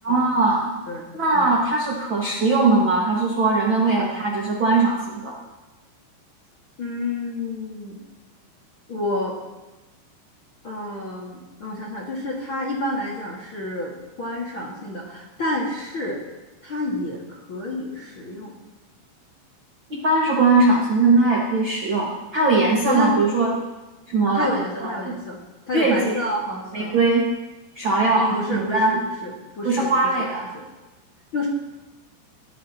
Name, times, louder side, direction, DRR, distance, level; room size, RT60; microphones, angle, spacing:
voice 1, 0.0-0.7 1.1-5.3 19.9-23.5 24.1-24.5 24.8-25.1 25.7-26.2 26.7-27.3 27.7-29.0 29.6-30.4, right 3 dB, 85° right, -4 dB, 1.0 m, -20 dB
voice 2, 0.9-1.5 6.8-8.0 8.9-9.4 10.6-13.9 14.2-16.2 16.6-18.5 22.8-23.1 24.3-25.4 25.7-26.9 28.1-29.9 30.2-30.3 30.5-30.6 31.3-31.5, left 1 dB, 45° left, -4 dB, 1.7 m, -29 dB
20.5 x 15.0 x 3.0 m, 1.1 s
omnidirectional pair, 5.4 m